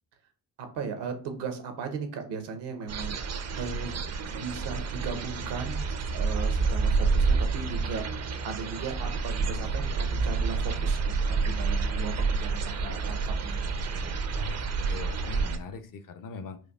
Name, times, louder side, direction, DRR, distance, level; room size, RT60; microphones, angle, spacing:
voice 1, 0.6-4.0 4.3-5.8 6.1-8.0 8.4-11.0 11.3-14.1, right 5 dB, 65° right, 6 dB, 0.9 m, -37 dB
sound 1, 2.9-15.6, right 4 dB, 35° right, 0.6 m, -29 dB
voice 2, 14.4-16.6, left 5 dB, 45° left, 10 dB, 0.6 m, -41 dB
4.4 x 2.3 x 2.3 m, 0.44 s
hypercardioid pair, 45°, 44 cm